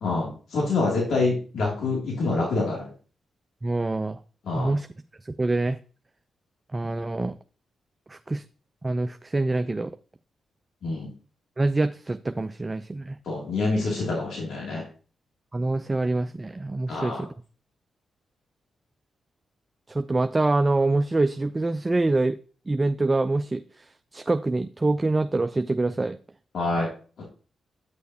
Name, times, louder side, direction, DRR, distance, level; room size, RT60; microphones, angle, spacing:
voice 1, 0.0-2.9 4.5-4.7 10.8-11.1 13.3-14.9 16.9-17.2 26.5-26.9 27.2-27.3, left 3 dB, 75° left, -3 dB, 2.6 m, -26 dB
voice 2, 3.6-4.2 4.5-4.9 5.2-5.8 6.7-7.4 8.1-8.4 8.8-9.9 11.6-13.2 15.5-17.3 19.9-22.4 22.7-23.9 24.1-26.2, right 2 dB, 30° right, 10 dB, 0.4 m, -25 dB
9.4 x 6.3 x 2.8 m, 0.38 s
supercardioid pair, 55°, 0 cm